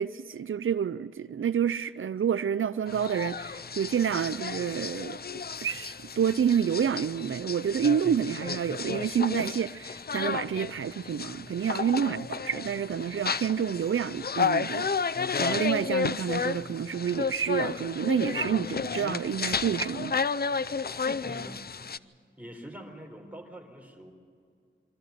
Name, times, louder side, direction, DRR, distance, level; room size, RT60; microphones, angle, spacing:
voice 1, 0.0-5.2 5.6-20.2, right 8 dB, 85° right, 0.4 m, -29 dB
sound 1, 2.9-22.0, left 5 dB, 50° left, 0.5 m, -32 dB
voice 2, 21.2-21.8 22.4-24.1, right 1 dB, 5° right, 4.0 m, -45 dB
23.5 x 14.0 x 9.5 m
wide cardioid pair, 55°, 20 cm